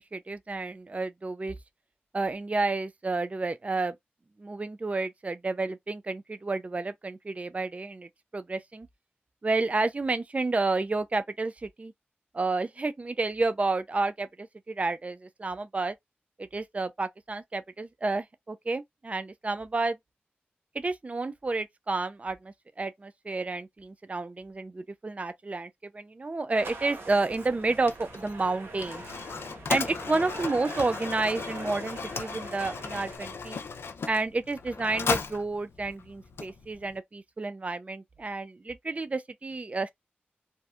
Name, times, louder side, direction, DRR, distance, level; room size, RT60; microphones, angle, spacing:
voice 1, 0.0-1.6 2.1-3.9 4.4-8.9 9.4-11.9 12.3-16.0 16.4-20.0 20.7-29.0 29.7-33.6 34.1-39.9, right 3 dB, 35° right, 0.3 m, -30 dB
sound 1, 26.5-33.2, right 3 dB, 80° right, 0.8 m, -43 dB
Mechanisms, 27.3-37.0, left 5 dB, 85° left, 0.4 m, -36 dB
2.6 x 2.1 x 2.3 m
cardioid pair, 45°, 4 cm